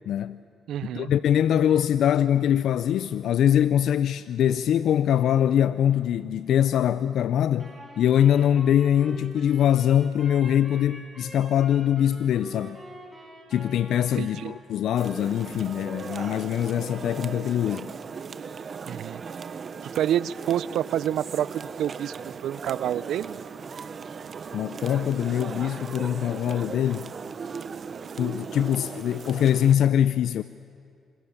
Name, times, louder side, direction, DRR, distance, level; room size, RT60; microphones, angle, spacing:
voice 1, 0.1-0.4 0.9-12.8 13.5-17.9 24.5-27.1 28.2-30.4, left 10 dB, 75° left, 0.5 m, -23 dB
voice 2, 0.7-1.1 14.2-14.5 18.9-19.2 19.8-22.2 22.4-23.4, right 11 dB, 75° right, 0.6 m, -28 dB
Wind instrument woodwind instrument, 7.6-14.5, right 1 dB, 10° right, 7.7 m, -45 dB
sound 1, 15.0-29.7, right 6 dB, 45° right, 1.1 m, -38 dB
27.0 x 26.0 x 7.2 m
cardioid pair, 90°, 0 cm